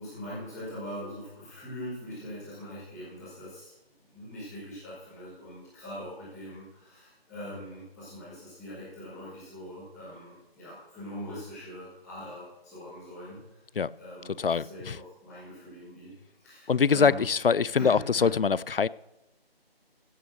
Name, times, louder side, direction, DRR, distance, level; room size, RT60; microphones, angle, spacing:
voice 1, 0.0-3.7 4.1-13.6 13.9-14.8 15.2-16.1 16.4-17.2 17.7-18.2, equal, ahead, -20 dB, 1.5 m, -42 dB
voice 2, 14.4-15.0 16.7-18.9, left 6 dB, 65° left, 21 dB, 0.4 m, -24 dB
16.0 x 5.9 x 6.5 m, 0.92 s
figure-of-eight pair, 165°, 31 cm